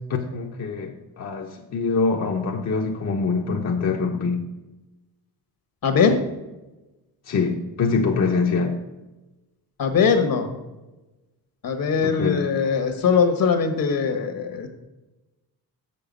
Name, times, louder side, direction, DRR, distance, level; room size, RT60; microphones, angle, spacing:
voice 1, 0.1-4.5 7.3-8.8 12.0-12.5, left 4 dB, 45° left, 1 dB, 0.9 m, -24 dB
voice 2, 5.8-6.2 9.8-10.5 11.6-14.7, left 6 dB, 60° left, 7 dB, 1.4 m, -21 dB
6.9 x 6.6 x 5.2 m, 1.1 s
cardioid pair, 85°, 38 cm